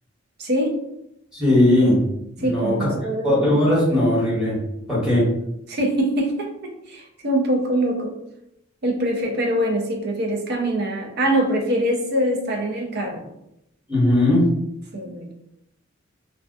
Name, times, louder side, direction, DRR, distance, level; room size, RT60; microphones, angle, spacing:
voice 1, 0.4-0.8 2.4-3.4 5.7-8.2 8.8-13.2 14.9-15.3, right 1 dB, 50° right, 2 dB, 0.5 m, -23 dB
voice 2, 1.3-2.0 2.4-2.9 3.2-4.6 4.9-5.3 13.9-14.4, left 1 dB, 5° right, -9 dB, 1.1 m, -18 dB
2.3 x 2.2 x 2.5 m, 0.82 s
head